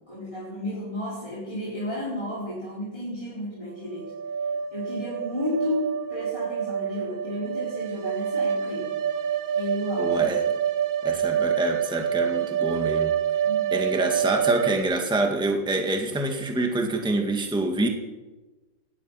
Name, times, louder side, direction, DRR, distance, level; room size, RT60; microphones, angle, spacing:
voice 1, 0.1-4.1 4.7-8.9 9.5-10.2 13.4-13.8, left 1 dB, 15° left, -9 dB, 4.9 m, -32 dB
sound 1, 4.0-14.8, right 8 dB, 80° right, 1.6 m, -27 dB
voice 2, 10.0-10.4 11.0-13.1 13.7-17.9, right 2 dB, ahead, 2 dB, 1.8 m, -26 dB
18.5 x 12.5 x 6.0 m, 1.2 s
omnidirectional pair, 2.2 m